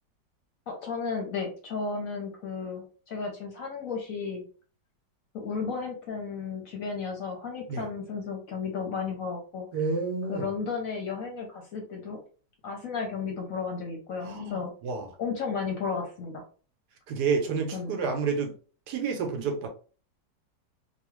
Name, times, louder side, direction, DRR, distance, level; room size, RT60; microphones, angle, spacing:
voice 1, 0.7-4.4 5.3-9.7 10.3-12.2 12.6-14.7 15.2-16.4 17.7-17.9, left 5 dB, 65° left, 0.9 m, -33 dB
voice 2, 9.7-10.5 14.2-15.1 17.1-18.5 18.9-19.7, right 5 dB, 70° right, 1.2 m, -29 dB
3.0 x 2.3 x 3.0 m
omnidirectional pair, 1.9 m